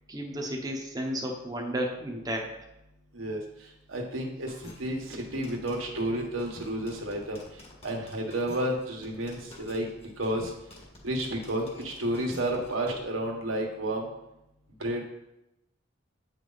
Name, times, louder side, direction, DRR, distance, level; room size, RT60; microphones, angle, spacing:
voice 1, 0.1-2.5, equal, 20° right, 0 dB, 1.0 m, -32 dB
voice 2, 3.9-7.4 7.8-9.9 10.2-10.5 11.0-14.1 14.8-15.0, right 1 dB, 85° right, 0 dB, 1.5 m, -31 dB
sound 1, 4.5-13.0, left 2 dB, 30° left, 1.6 m, -48 dB
8.2 x 5.0 x 4.1 m, 0.87 s
head